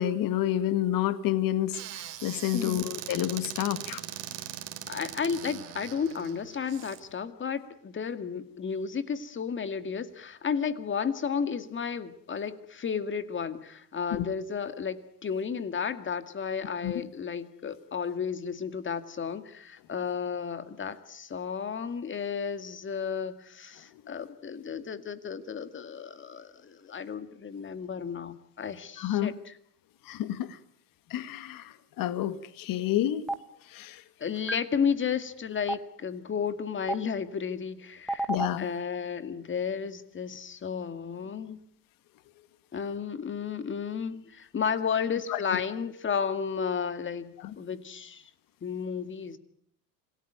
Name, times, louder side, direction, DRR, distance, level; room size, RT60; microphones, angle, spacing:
voice 1, 0.0-4.0 14.1-14.3 16.8-16.9 29.0-29.3 30.1-30.6 31.1-33.2 33.7-34.0 38.3-38.6 45.3-45.4 47.4-47.5, left 12 dB, 45° left, 12 dB, 1.9 m, -29 dB
Squeak / Cupboard open or close, 1.7-7.0, right 13 dB, 60° right, 3.6 m, -40 dB
voice 2, 2.5-2.9 4.9-29.5 34.2-38.3 38.6-41.6 42.7-48.3 48.6-49.4, left 6 dB, 25° left, 11 dB, 2.0 m, -33 dB
Stream, 33.3-33.4 34.5-34.6 35.7-35.8 36.9-37.0 38.1-38.5, right 2 dB, ahead, 1.6 m, -28 dB
27.0 x 18.0 x 9.3 m, 0.68 s
hypercardioid pair, 105°, 48 cm